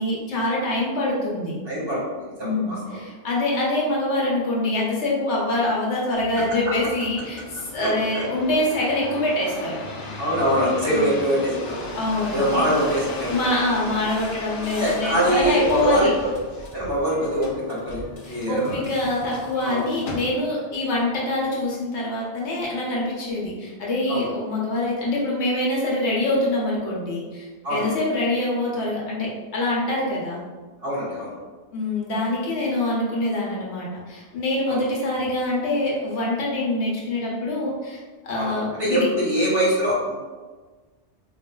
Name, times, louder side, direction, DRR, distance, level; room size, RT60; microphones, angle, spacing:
voice 1, 0.0-1.6 2.4-9.8 10.9-11.1 11.9-12.7 13.3-16.1 18.2-30.4 31.7-39.1, left 1 dB, 75° left, -4 dB, 1.0 m, -25 dB
voice 2, 1.7-2.0 2.4-2.7 7.8-8.2 10.2-11.9 12.3-13.4 14.8-16.3 16.7-18.0 18.3-18.8 19.6-19.8 24.1-24.3 27.6-27.9 30.8-31.3 34.7-34.8 38.4-38.5 38.8-40.1, equal, 60° right, -7 dB, 1.6 m, -23 dB
sound 1, 6.1-20.7 21.3-21.8, left 2 dB, 50° left, 0.5 m, -36 dB
3.7 x 2.5 x 2.2 m, 1.3 s
omnidirectional pair, 1.2 m